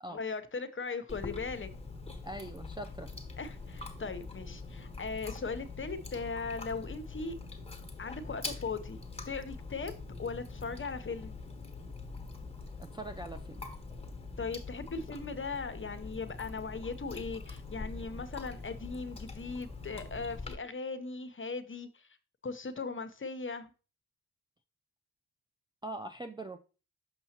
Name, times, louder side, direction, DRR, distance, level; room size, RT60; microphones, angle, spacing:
voice 1, 0.1-1.7 3.4-7.4 8.0-9.0 9.3-11.4 14.4-22.1 22.4-23.7, left 4 dB, 30° left, 0.9 m, -38 dB
Chewing mastication, 1.1-20.5, left 3 dB, 15° left, 1.2 m, -44 dB
voice 2, 2.2-3.1 12.8-13.6 25.8-26.6, right 2 dB, 10° right, 0.4 m, -42 dB
6.6 x 5.4 x 2.9 m
supercardioid pair, 50°, 42 cm